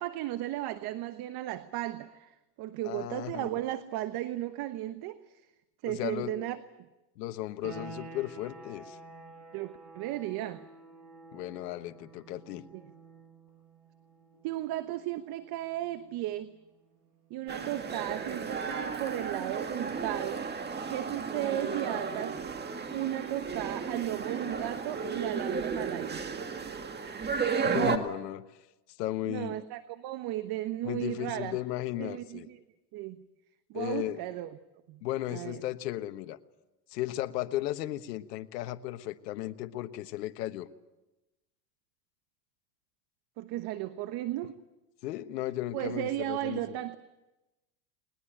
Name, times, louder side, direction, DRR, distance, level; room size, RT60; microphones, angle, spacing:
voice 1, 0.0-5.3 5.8-6.9 9.5-10.6 12.7-12.8 14.4-16.5 17.3-20.4 20.9-22.4 22.9-26.2 29.3-31.6 32.0-32.6 32.9-33.2 33.7-34.6 34.9-35.0 35.3-35.6 43.4-44.6 45.7-47.0, right 14 dB, 50° right, 11 dB, 1.2 m, -35 dB
voice 2, 2.8-3.5 5.9-6.3 7.2-9.0 11.3-12.7 27.6-28.5 29.0-29.6 30.8-32.5 33.7-34.2 35.0-36.4 36.9-40.7 45.0-46.8, left 14 dB, 80° left, 10 dB, 1.4 m, -35 dB
sound 1, 7.6-18.1, right 4 dB, 80° right, 6.6 m, -51 dB
sound 2, 17.5-28.0, right 5 dB, 20° right, 2.0 m, -33 dB
20.5 x 20.5 x 8.9 m, 1.0 s
supercardioid pair, 110°, 48 cm